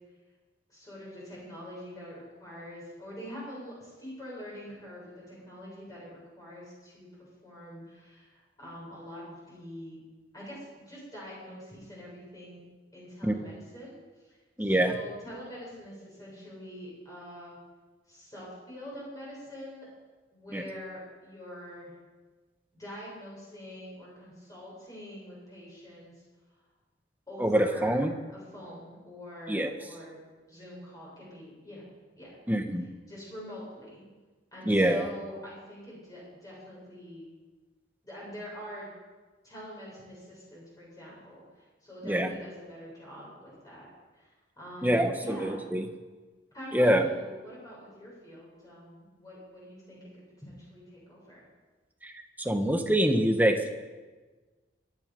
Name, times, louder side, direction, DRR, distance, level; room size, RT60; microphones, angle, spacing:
voice 1, 0.7-7.1 7.4-10.0 10.3-12.6 12.9-14.0 14.3-17.6 18.1-19.9 20.3-21.9 22.7-26.1 27.3-30.2 30.5-31.8 32.1-32.4 33.1-34.0 34.5-37.3 38.0-38.9 39.4-41.4 41.8-43.9 44.2-44.3 44.6-45.7 46.5-51.5, equal, 20° left, -6 dB, 7.5 m, -45 dB
voice 2, 14.6-14.9 20.5-20.6 27.4-28.1 29.5-29.7 32.5-32.9 34.7-35.1 42.0-42.3 44.8-45.8 46.7-47.1 52.0-52.1 52.4-53.8, right 1 dB, 10° right, 5 dB, 1.3 m, -25 dB
24.5 x 11.0 x 5.4 m, 1.3 s
head